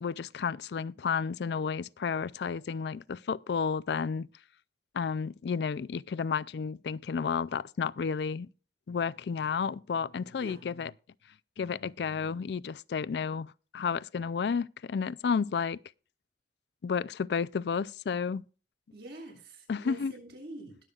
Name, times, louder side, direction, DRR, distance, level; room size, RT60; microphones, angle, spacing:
voice 1, 0.0-4.3 4.9-8.5 8.9-10.9 11.6-15.8 16.8-18.4 19.7-20.1, left 6 dB, 70° left, 0.4 m, -32 dB
voice 2, 18.9-20.8, right 1 dB, 65° right, 6.9 m, -46 dB
21.0 x 7.8 x 2.4 m
head